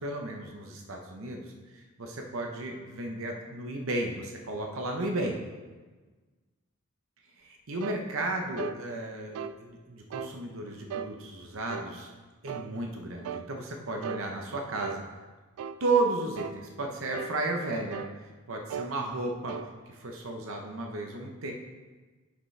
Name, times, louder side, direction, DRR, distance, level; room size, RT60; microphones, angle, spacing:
voice 1, 0.0-5.4 7.4-12.1 12.4-15.0 15.8-18.0 18.5-19.5 19.9-21.5, right 2 dB, 65° right, 2 dB, 0.8 m, -33 dB
sound 1, 7.8-8.0 8.6-8.8 9.3-9.6 10.1-10.4 10.9-11.1 11.7-11.9 12.5-12.7 13.2-13.5 14.0-14.3 14.8-15.0 15.6-15.8 16.4-16.6 17.1-17.4 17.9-18.2 18.7-18.9 19.5-19.7, right 7 dB, 85° right, 0.3 m, -37 dB
10.5 x 5.1 x 3.3 m, 1.3 s
head